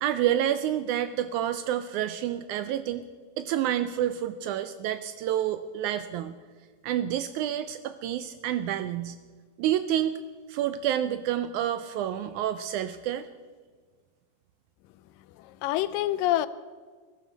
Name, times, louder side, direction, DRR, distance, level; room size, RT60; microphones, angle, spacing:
voice 1, 0.0-3.0 3.4-6.3 6.8-9.2 9.6-10.2 10.5-13.3, right 11 dB, 80° right, 11 dB, 1.8 m, -28 dB
voice 2, 15.4-16.5, left 14 dB, 85° left, 16 dB, 2.2 m, -26 dB
21.0 x 12.0 x 4.1 m, 1.5 s
omnidirectional pair, 3.9 m